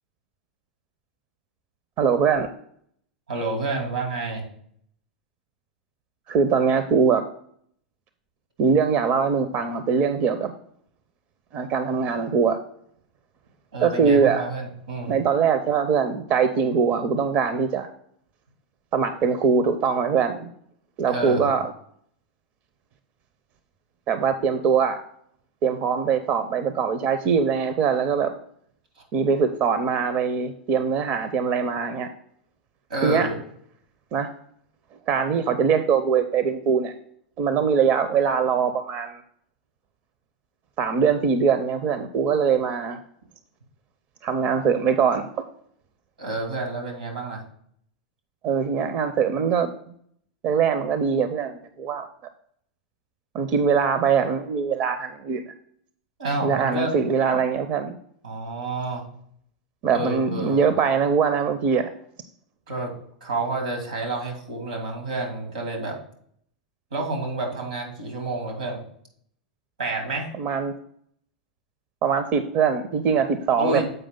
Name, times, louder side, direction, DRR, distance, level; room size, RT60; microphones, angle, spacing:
voice 1, 2.0-2.5 6.3-7.2 8.6-10.5 11.5-12.6 13.8-14.5 15.1-17.9 18.9-20.5 21.0-21.7 24.1-25.0 25.6-28.3 29.1-32.1 33.0-33.3 34.1-34.3 35.1-36.9 37.4-39.2 40.8-43.0 44.2-45.3 48.4-49.7 50.4-52.1 53.3-55.4 56.4-58.0 59.8-61.9 70.4-70.7 72.0-73.8, right 6 dB, 40° right, 9 dB, 0.6 m, -22 dB
voice 2, 3.3-4.4 13.7-15.2 21.1-21.5 32.9-33.4 46.2-47.4 56.2-56.9 58.2-59.1 59.9-60.7 62.7-62.9 63.2-66.0 66.9-68.8 69.8-70.3 73.6-73.8, right 2 dB, 85° right, 1 dB, 2.4 m, -29 dB
7.8 x 5.0 x 3.7 m, 0.65 s
figure-of-eight pair, 95°, 4 cm